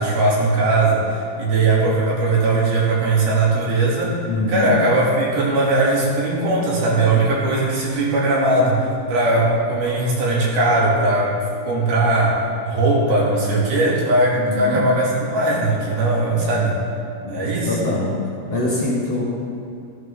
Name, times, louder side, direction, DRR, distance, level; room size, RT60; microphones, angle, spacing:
voice 1, 0.0-4.2 4.5-11.4 11.6-12.4 12.6-16.8 17.3-17.7, right 2 dB, 65° right, -5 dB, 4.3 m, -19 dB
voice 2, 4.3-4.7 14.4-14.8 17.2-18.1 18.5-19.2, left 2 dB, 45° left, -7 dB, 2.5 m, -24 dB
14.0 x 14.0 x 3.7 m, 2.6 s
omnidirectional pair, 4.7 m